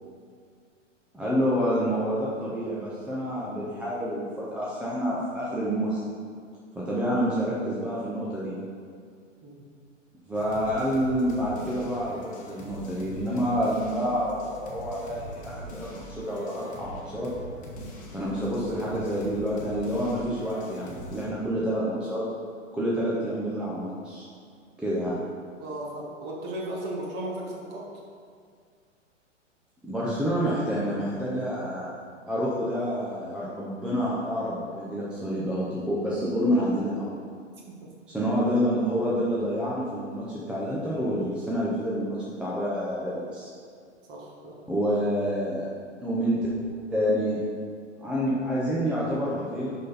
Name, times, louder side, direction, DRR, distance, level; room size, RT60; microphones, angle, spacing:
voice 1, 1.1-6.0 6.9-8.5 10.3-17.3 18.1-22.2 22.7-24.2 24.8-25.2 29.8-31.9 32.3-37.2 38.1-43.5 44.7-45.7 46.0-46.4 46.9-47.4 48.0-49.8, equal, 5° right, -8 dB, 0.6 m, -28 dB
sound 1, 10.3-21.3, equal, 20° left, 1.3 m, -42 dB
voice 2, 25.6-27.8 37.7-37.9 44.1-44.6, right 1 dB, 25° right, -3 dB, 1.6 m, -36 dB
11.0 x 4.2 x 4.2 m, 2.1 s
figure-of-eight pair, 110°, 38 cm